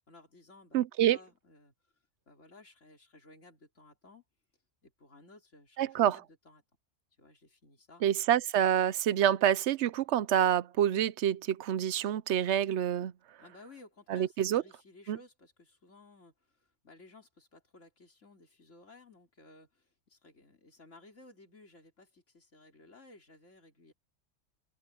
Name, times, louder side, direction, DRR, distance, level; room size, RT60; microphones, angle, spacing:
voice 1, 0.1-0.8 1.1-1.7 2.3-4.2 4.8-6.6 7.2-8.1 13.4-23.9, left 2 dB, 80° left, 3.9 m, -57 dB
voice 2, 0.7-1.2 5.8-6.2 8.0-13.1 14.1-14.6 15.1-15.2, right 10 dB, 70° right, 0.9 m, -27 dB
open air
omnidirectional pair, 1.2 m